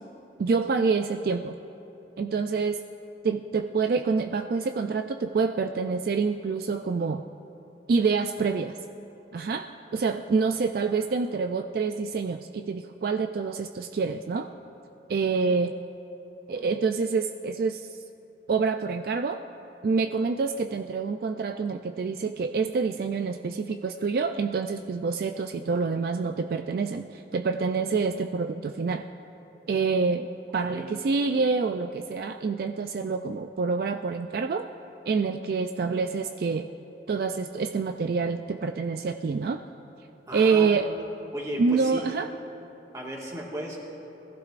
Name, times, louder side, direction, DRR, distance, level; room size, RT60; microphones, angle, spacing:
voice 1, 0.4-1.5 2.2-2.8 3.2-7.2 7.9-8.8 9.3-14.5 15.1-15.7 16.5-17.9 18.5-19.4 19.8-29.0 29.7-34.7 35.1-36.7 37.1-39.6 40.3-40.9 41.6-42.3, right 4 dB, 55° right, 6 dB, 0.3 m, -27 dB
voice 2, 40.3-41.0 41.3-42.0 42.9-43.8, equal, 20° right, -3 dB, 1.7 m, -36 dB
21.0 x 15.0 x 2.5 m, 3.0 s
head